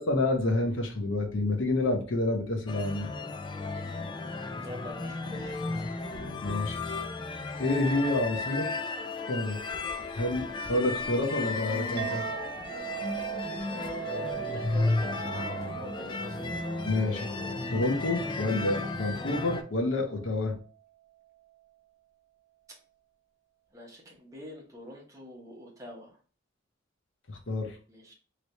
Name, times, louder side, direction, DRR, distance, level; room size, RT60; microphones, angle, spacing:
voice 1, 0.0-3.1 6.4-6.8 7.6-8.7 9.3-9.6 10.2-12.2 16.9-17.3 17.7-20.6 27.3-27.8, left 2 dB, 70° left, 3 dB, 0.8 m, -28 dB
sound 1, 2.7-19.6, left 3 dB, 25° left, 0.3 m, -34 dB
voice 2, 4.6-5.8 13.7-16.4 23.7-26.2 27.9-28.1, left 1 dB, 15° right, -2 dB, 1.1 m, -44 dB
Chink clink, 12.0-20.7, right 15 dB, 55° right, 0.8 m, -41 dB
3.1 x 3.0 x 2.7 m, 0.38 s
head